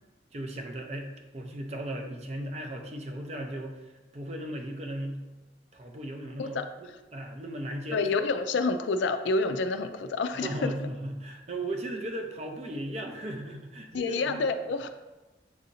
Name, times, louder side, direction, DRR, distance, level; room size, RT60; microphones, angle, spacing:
voice 1, 0.3-5.2 5.7-8.1 10.3-14.6, right 1 dB, 35° right, 3 dB, 0.5 m, -37 dB
voice 2, 7.9-10.7 13.9-14.9, left 3 dB, 85° left, 9 dB, 0.4 m, -28 dB
7.1 x 2.7 x 2.6 m, 1.1 s
head